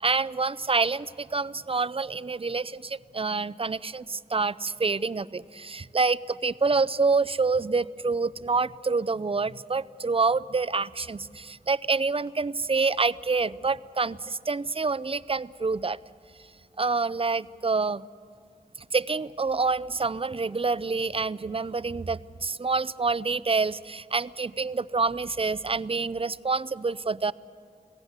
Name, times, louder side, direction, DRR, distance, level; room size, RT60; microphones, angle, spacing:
voice 1, 0.0-16.0 16.8-18.0 18.9-27.3, right 4 dB, 35° right, 17 dB, 0.5 m, -27 dB
26.5 x 17.5 x 8.1 m, 2.2 s
wide cardioid pair, 55°, 16 cm